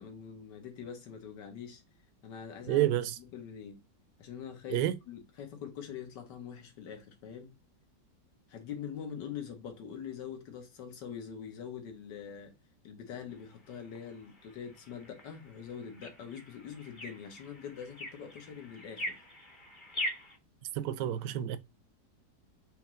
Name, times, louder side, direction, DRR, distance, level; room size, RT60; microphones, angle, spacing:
voice 1, 0.0-1.8 2.2-2.9 3.2-3.8 4.2-7.5 8.5-12.5 12.8-19.2, left 8 dB, 70° left, 1.8 m, -44 dB
voice 2, 2.7-3.2 4.7-5.0 20.7-21.6, right 12 dB, 75° right, 1.2 m, -29 dB
sound 1, 13.3-20.4, equal, 20° left, 0.9 m, -43 dB
4.5 x 3.1 x 3.7 m
omnidirectional pair, 2.0 m